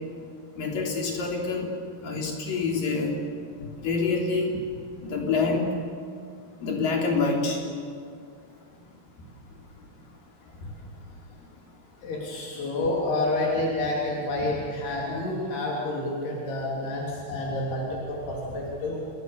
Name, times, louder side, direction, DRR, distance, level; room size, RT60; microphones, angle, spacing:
voice 1, 0.6-1.7 2.0-3.2 3.8-4.5 5.0-5.7 6.6-7.6, left 4 dB, 60° left, 0 dB, 4.9 m, -26 dB
voice 2, 12.0-19.0, left 2 dB, 80° left, -3 dB, 5.3 m, -29 dB
29.0 x 20.5 x 7.0 m, 2.3 s
omnidirectional pair, 4.5 m